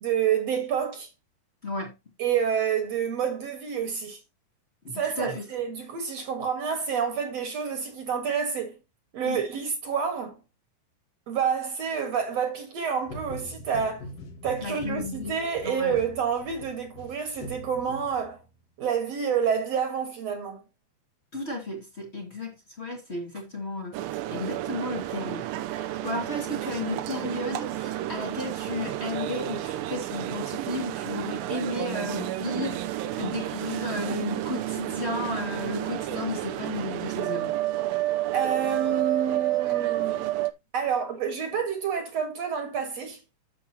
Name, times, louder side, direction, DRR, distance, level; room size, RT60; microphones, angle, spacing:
voice 1, 0.0-1.1 2.2-4.2 4.9-8.8 9.1-10.4 11.3-14.1 14.4-18.4 18.8-20.6 38.3-40.3 40.7-43.2, right 7 dB, 55° right, 2.4 m, -28 dB
voice 2, 1.6-1.9 4.8-5.4 9.2-9.4 14.6-15.4 15.6-16.0 21.3-24.0 24.3-25.5 25.7-37.5, left 3 dB, 25° left, 1.5 m, -34 dB
sound 1, 13.1-18.6, left 1 dB, 55° left, 2.2 m, -43 dB
sound 2, 23.9-40.5, right 14 dB, 90° right, 2.5 m, -30 dB
10.5 x 7.4 x 2.8 m
omnidirectional pair, 3.9 m